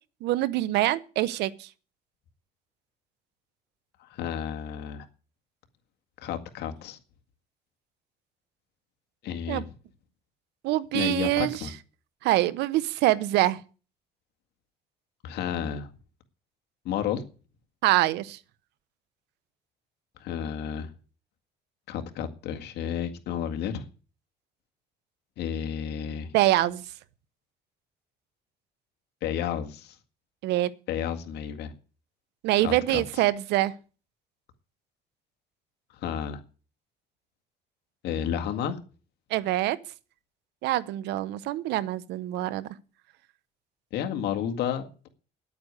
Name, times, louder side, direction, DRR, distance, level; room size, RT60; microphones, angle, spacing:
voice 1, 0.2-1.7 9.5-9.6 10.6-11.6 12.2-13.6 17.8-18.4 26.3-26.8 30.4-30.7 32.4-33.7 39.3-39.8 40.6-42.7, right 15 dB, 85° right, 0.9 m, -25 dB
voice 2, 4.0-5.1 6.2-7.0 9.2-9.7 10.9-11.7 15.2-15.9 16.8-17.2 20.2-20.9 21.9-23.9 25.4-26.3 29.2-30.0 30.9-31.7 32.6-33.2 36.0-36.4 38.0-38.8 43.9-45.1, left 9 dB, 80° left, 2.0 m, -31 dB
9.8 x 8.7 x 9.7 m
cardioid pair, 110°, 17 cm